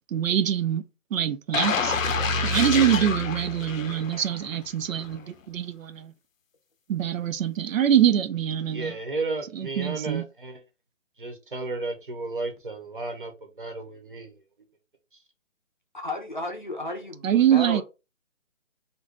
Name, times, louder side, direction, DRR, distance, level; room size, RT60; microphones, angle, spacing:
voice 1, 0.1-0.8 1.1-2.0 2.4-6.1 6.9-9.0 9.5-10.2 17.2-17.8, right 10 dB, 85° right, 0.5 m, -24 dB
sound 1, 1.5-4.5 4.9-5.1, left 4 dB, 85° left, 0.6 m, -27 dB
voice 2, 8.7-10.6 11.2-13.3 13.6-14.3, right 3 dB, 40° right, 0.7 m, -33 dB
voice 3, 15.9-17.8, left 2 dB, 40° left, 0.5 m, -34 dB
2.6 x 2.2 x 3.5 m
hypercardioid pair, 175°, 39 cm